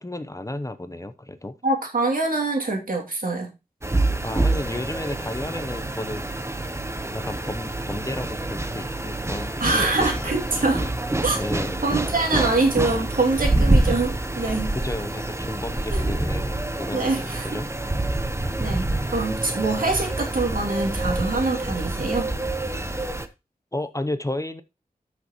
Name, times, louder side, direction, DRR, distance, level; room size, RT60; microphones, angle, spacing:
voice 1, 0.0-1.5 4.2-6.7 7.1-10.3 11.4-11.8 14.7-17.7 23.7-24.6, left 1 dB, 20° left, 11 dB, 0.8 m, -33 dB
voice 2, 1.6-3.5 9.6-10.9 11.2-11.4 11.8-14.7 15.9-16.1 16.9-17.6 18.6-22.3, right 3 dB, 70° right, 1 dB, 2.7 m, -24 dB
sound 1, 3.8-23.3, right 2 dB, 20° right, 1.0 m, -26 dB
13.5 x 6.4 x 3.1 m, 0.25 s
wide cardioid pair, 60°, 15 cm